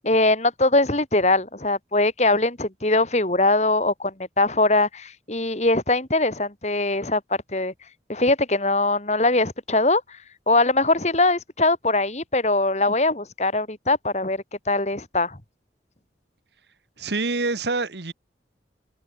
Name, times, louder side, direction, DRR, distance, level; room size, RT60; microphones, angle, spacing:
voice 1, 0.0-7.7 8.1-10.2 10.5-15.4, left 2 dB, 40° left, 2.5 m, -22 dB
voice 2, 17.0-18.1, right 3 dB, 70° right, 1.7 m, -26 dB
head